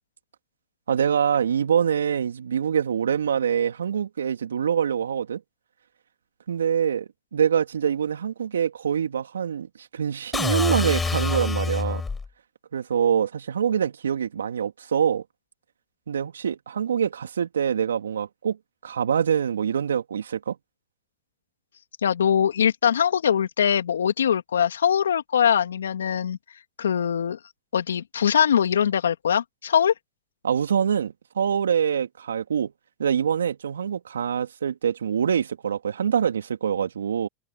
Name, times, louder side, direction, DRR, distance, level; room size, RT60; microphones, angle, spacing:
voice 1, 0.9-5.4 6.5-12.0 12.7-15.2 16.1-18.6 18.8-20.6 30.4-32.7 33.0-37.3, right 8 dB, 85° right, 3.3 m, -25 dB
sound 1, 10.3-12.3, left 4 dB, 15° left, 6.6 m, -26 dB
voice 2, 22.0-26.4 26.8-27.4 27.7-29.9, left 8 dB, 80° left, 2.9 m, -22 dB
hypercardioid pair, 90°, 0 cm